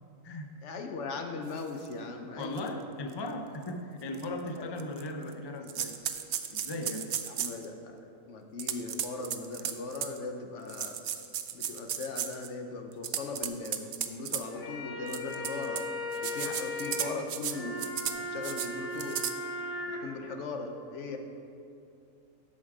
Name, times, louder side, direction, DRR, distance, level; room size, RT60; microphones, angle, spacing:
voice 1, 0.6-2.7 4.6-4.8 7.4-8.0 8.3-11.0 11.5-15.8 16.2-17.8 18.2-19.2 19.8-21.2, left 3 dB, 60° left, 4 dB, 1.1 m, -39 dB
sound 1, 1.8-1.9 2.6-2.7 3.1-3.2 4.1-4.2 4.8-5.3 5.7-7.6 8.6-10.2 10.7-12.5 12.9-14.4 15.1-15.8 16.1-17.5 17.8-18.2 18.4-18.7 19.0-19.3, right 9 dB, 60° right, 0.6 m, -34 dB
voice 2, 2.4-6.0 6.5-7.1, left 1 dB, 45° left, 5 dB, 0.3 m, -37 dB
sound 2, 14.4-20.0, left 1 dB, 80° left, 1.7 m, -37 dB
11.0 x 6.4 x 4.8 m, 2.6 s
omnidirectional pair, 1.4 m